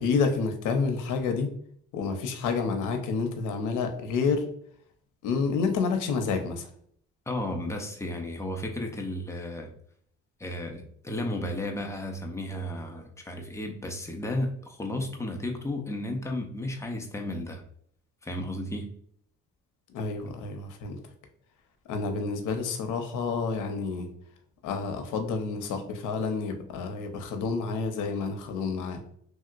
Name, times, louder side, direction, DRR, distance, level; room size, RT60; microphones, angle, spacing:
voice 1, 0.0-1.5 1.9-4.5 5.2-6.7 19.9-21.0 21.9-24.1 24.6-29.0, left 4 dB, 90° left, 0.6 m, -29 dB
voice 2, 7.3-9.7 10.4-17.6 18.2-18.9, left 1 dB, 10° left, 0.6 m, -33 dB
3.0 x 2.8 x 2.4 m
cardioid pair, 90°, 30 cm